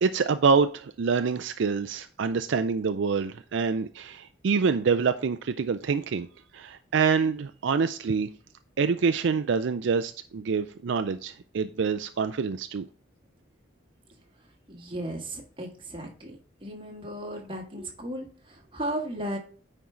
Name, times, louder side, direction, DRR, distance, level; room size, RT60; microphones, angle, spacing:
voice 1, 0.0-6.3 6.5-8.3 8.8-12.9, right 5 dB, 65° right, 0.4 m, -26 dB
voice 2, 14.7-16.4 16.6-19.4, right 1 dB, 25° right, 1.6 m, -35 dB
9.3 x 4.6 x 3.7 m
head